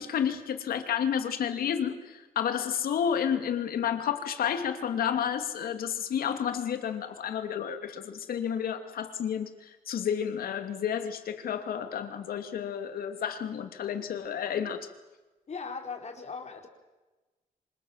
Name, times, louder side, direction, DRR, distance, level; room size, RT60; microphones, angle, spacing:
voice 1, 0.0-14.9, left 8 dB, 85° left, 2.8 m, -31 dB
voice 2, 15.5-16.7, left 5 dB, 50° left, 4.9 m, -38 dB
26.5 x 26.0 x 7.5 m
cardioid pair, 85°, 15 cm